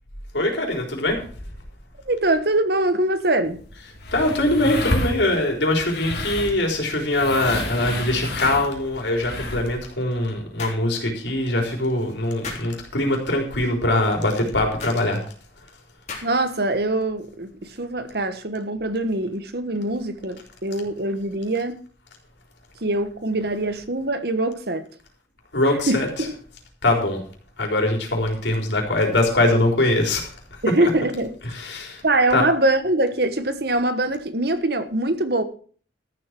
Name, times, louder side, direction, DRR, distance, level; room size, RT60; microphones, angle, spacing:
voice 1, 0.3-1.2 4.1-15.2 25.5-26.1 26.8-27.2 27.6-30.3 31.5-32.0 32.3-32.4, left 1 dB, 80° left, 4.2 m, -22 dB
voice 2, 2.0-3.6 16.2-21.8 22.8-24.8 25.7-26.4 30.6-31.3 32.0-35.4, right 2 dB, 60° right, 1.3 m, -23 dB
sound 1, 3.4-9.8, left 1 dB, 60° left, 3.1 m, -30 dB
sound 2, 8.4-8.7 10.6-10.8 12.4-12.7 14.8-15.0 16.1-16.5, left 4 dB, 40° left, 3.6 m, -35 dB
13.5 x 8.0 x 6.0 m
head